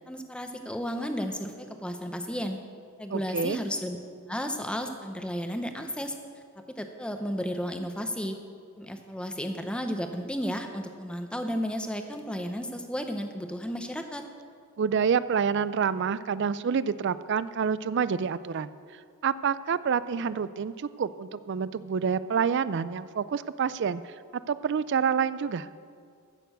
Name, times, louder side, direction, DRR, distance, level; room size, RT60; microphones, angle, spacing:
voice 1, 0.1-2.6 3.0-4.0 4.3-6.1 6.8-8.4 8.8-14.2, equal, 5° left, 6 dB, 0.7 m, -33 dB
voice 2, 3.1-3.6 14.8-18.7 19.2-24.0 24.5-25.7, right 6 dB, 50° right, 16 dB, 0.4 m, -27 dB
15.5 x 6.8 x 6.7 m, 2.2 s
head